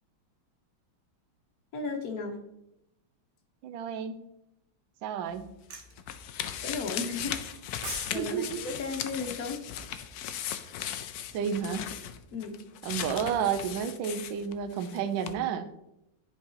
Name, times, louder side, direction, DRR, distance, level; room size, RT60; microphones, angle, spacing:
voice 1, 1.7-2.4 6.6-7.4 8.1-9.6 12.3-12.6, left 4 dB, 55° left, 4 dB, 1.2 m, -34 dB
voice 2, 3.6-4.2 5.0-5.5 8.1-8.6 11.3-11.9 12.8-15.7, right 7 dB, 80° right, 8 dB, 1.3 m, -31 dB
sound 1, 5.3-15.0 15.2-15.3, left 9 dB, 90° left, 0.8 m, -38 dB
sound 2, 5.7-5.9 7.5-8.2 8.4-8.6, right 5 dB, 55° right, 1.2 m, -39 dB
10.0 x 4.7 x 2.8 m, 0.83 s
omnidirectional pair, 2.2 m